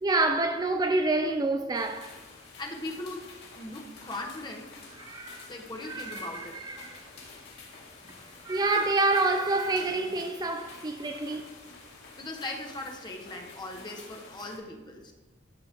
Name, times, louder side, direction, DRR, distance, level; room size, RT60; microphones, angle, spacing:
voice 1, 0.0-2.2 5.0-5.5 5.8-7.0 8.4-11.4, right 2 dB, 20° right, 0.4 m, -27 dB
sound 1, 1.7-14.6, left 4 dB, 60° left, 2.6 m, -49 dB
voice 2, 2.6-3.2 3.6-4.8 5.5-6.6 12.2-15.1, left 2 dB, 25° left, 1.0 m, -39 dB
13.5 x 7.1 x 2.9 m
head